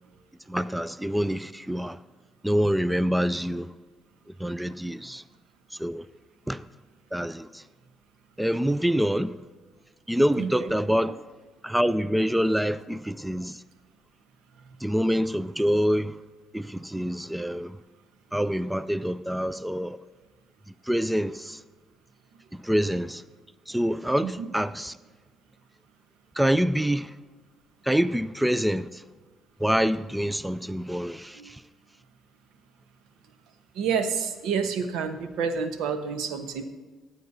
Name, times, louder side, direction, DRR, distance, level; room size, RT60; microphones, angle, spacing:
voice 1, 0.5-2.0 2.4-3.7 4.4-5.2 5.8-6.1 6.5-6.6 7.1-7.6 8.4-9.4 10.1-11.1 11.6-13.6 14.8-16.2 16.5-17.8 18.3-20.0 20.9-21.6 22.5-23.2 23.7-25.0 26.4-27.1 27.8-29.0 29.6-31.6, equal, 5° right, 0.4 m, -26 dB
voice 2, 10.4-10.7 24.2-24.5 31.4-31.5 33.8-36.6, right 6 dB, 80° right, 1.0 m, -29 dB
15.0 x 9.1 x 2.7 m
supercardioid pair, 75°, 0 cm